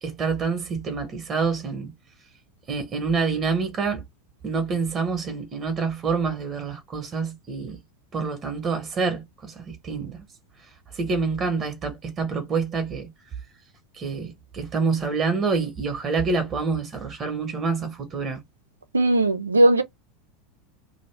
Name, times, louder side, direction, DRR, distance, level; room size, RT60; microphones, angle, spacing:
voice 1, 0.0-1.9 2.7-4.0 4.4-7.8 8.1-10.2 10.9-13.1 13.9-18.4, right 4 dB, 35° right, 1.1 m, -27 dB
voice 2, 18.9-19.8, right 1 dB, 90° right, 0.6 m, -18 dB
2.7 x 2.5 x 3.3 m
figure-of-eight pair, 80°, 0 cm